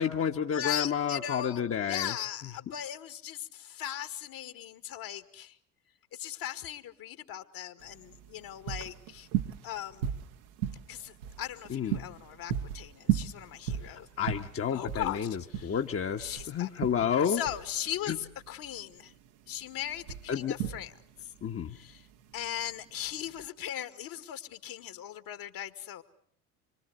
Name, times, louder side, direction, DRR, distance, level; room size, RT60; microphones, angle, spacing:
voice 1, 0.0-2.1 11.7-12.0 13.8-17.4 18.1-18.2 20.3-20.6 21.4-21.7, left 8 dB, 30° left, 4 dB, 1.5 m, -30 dB
voice 2, 0.5-5.5 6.1-9.3 9.6-10.1 10.9-14.1 14.7-15.8 16.2-16.7 17.3-19.1 19.5-20.9 21.7-22.0 22.3-26.0, left 11 dB, 50° left, 11 dB, 2.1 m, -38 dB
sound 1, 7.8-23.5, right 10 dB, 70° right, 1.6 m, -37 dB
26.0 x 24.0 x 8.1 m, 0.62 s
figure-of-eight pair, 65°, 44 cm